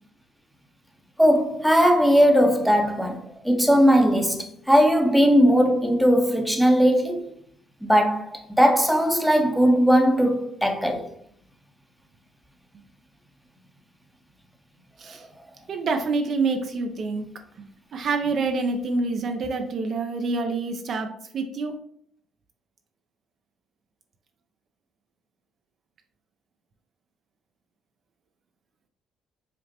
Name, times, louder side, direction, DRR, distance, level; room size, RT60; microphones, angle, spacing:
voice 1, 1.2-7.2 7.8-11.1, equal, ahead, 0.7 m, -19 dB
voice 2, 15.7-17.3 17.9-21.7, right 3 dB, 55° right, 0.5 m, -27 dB
4.9 x 2.1 x 2.8 m
supercardioid pair, 75°, 0 cm